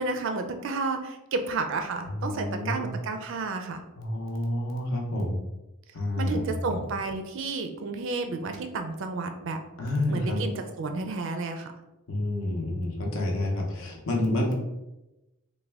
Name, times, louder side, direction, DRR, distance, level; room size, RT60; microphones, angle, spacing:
voice 1, 0.0-3.8 6.2-9.6 10.1-11.7, right 3 dB, 55° right, 6 dB, 0.4 m, -31 dB
voice 2, 2.2-2.9 4.0-5.4 5.9-6.8 9.8-10.4 12.1-14.5, left 1 dB, 65° left, 1 dB, 0.7 m, -29 dB
3.4 x 2.2 x 3.3 m, 0.97 s
head